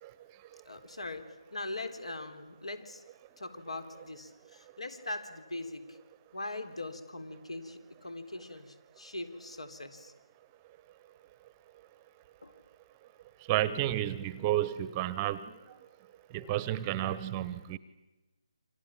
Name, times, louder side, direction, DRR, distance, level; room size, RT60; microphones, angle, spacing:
voice 1, 0.6-3.0 3.4-6.0 6.3-10.1 12.4-12.5, left 2 dB, 85° left, 8 dB, 3.8 m, -41 dB
voice 2, 13.5-15.5 16.3-17.8, right 13 dB, 20° right, 16 dB, 0.8 m, -31 dB
28.0 x 25.5 x 7.4 m, 1.1 s
figure-of-eight pair, 155°, 3 cm